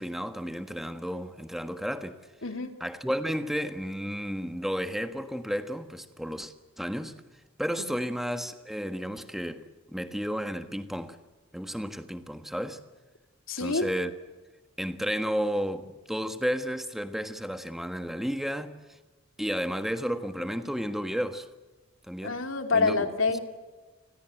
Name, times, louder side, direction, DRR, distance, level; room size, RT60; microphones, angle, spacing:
voice 1, 0.0-2.2 2.8-7.1 7.6-11.2 11.5-12.8 13.6-14.1 14.8-19.0 19.4-21.5 22.1-22.4 22.7-23.1, equal, ahead, 1.5 m, -32 dB
voice 2, 13.5-13.9 22.2-23.4, left 4 dB, 65° left, 3.1 m, -26 dB
29.5 x 21.0 x 7.9 m
head